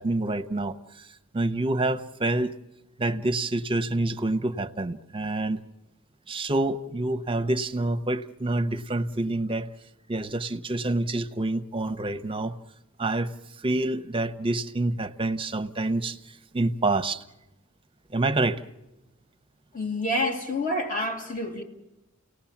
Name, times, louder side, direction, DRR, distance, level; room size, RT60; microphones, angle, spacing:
voice 1, 0.0-2.5 3.0-5.6 6.3-9.7 10.1-12.6 13.0-17.2 18.1-18.6, right 2 dB, 25° right, 0.8 m, -27 dB
voice 2, 19.7-21.6, left 1 dB, 40° left, 2.6 m, -28 dB
29.5 x 18.0 x 7.3 m
head